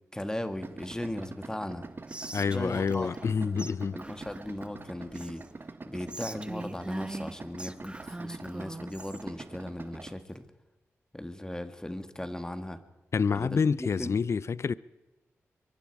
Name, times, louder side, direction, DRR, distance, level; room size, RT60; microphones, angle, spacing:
voice 1, 0.1-5.4 5.9-10.4 11.1-12.8 13.3-14.2, left 1 dB, 10° left, 2.1 m, -38 dB
Idling, 0.6-10.2, right 3 dB, 45° right, 1.5 m, -45 dB
Whispering, 2.1-3.3 3.6-3.7 4.0-5.5 6.1-9.2, right 2 dB, 20° right, 1.2 m, -42 dB
voice 2, 2.3-4.0 13.1-14.7, left 5 dB, 60° left, 0.6 m, -28 dB
24.0 x 23.0 x 4.9 m
cardioid pair, 50°, 5 cm